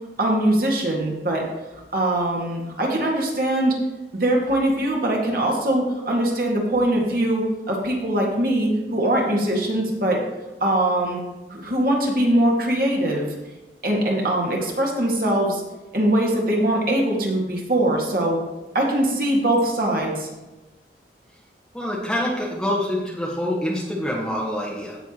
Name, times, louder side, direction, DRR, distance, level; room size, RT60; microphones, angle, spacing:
voice 1, 0.2-1.5 1.9-3.8 4.1-10.2 10.6-11.2 11.5-13.3 13.8-15.6 15.9-18.4 18.7-20.3, right 1 dB, 50° right, -2 dB, 1.9 m, -22 dB
voice 2, 21.7-25.0, left 1 dB, 5° left, -5 dB, 1.5 m, -26 dB
16.0 x 5.9 x 3.0 m, 1.1 s
head